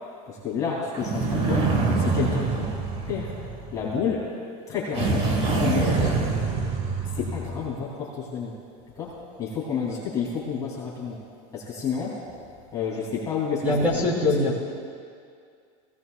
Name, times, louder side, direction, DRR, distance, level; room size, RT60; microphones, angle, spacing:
voice 1, 0.3-1.7 2.0-2.7 3.1-3.3 3.7-4.2 4.7-6.3 7.1-8.5 9.0-11.2 11.5-12.1 12.7-13.6 13.9-14.0, left 6 dB, 20° left, -6 dB, 3.2 m, -30 dB
sound 1, 0.9-4.0 4.9-7.6, right 4 dB, 30° right, 1.5 m, -25 dB
voice 2, 13.6-14.5, left 2 dB, 10° right, -5 dB, 3.4 m, -23 dB
21.0 x 17.5 x 2.5 m, 2.2 s
supercardioid pair, 160°, 19 cm